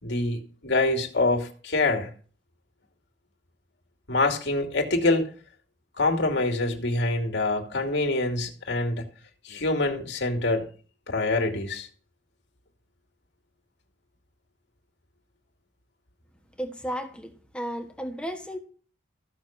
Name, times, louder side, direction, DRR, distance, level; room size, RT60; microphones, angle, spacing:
voice 1, 0.0-2.1 4.1-5.3 6.0-9.0 9.4-10.7 11.1-11.9, left 2 dB, 65° left, 2.6 m, -25 dB
voice 2, 16.6-18.6, equal, 5° left, 1.4 m, -34 dB
15.0 x 6.5 x 7.4 m
head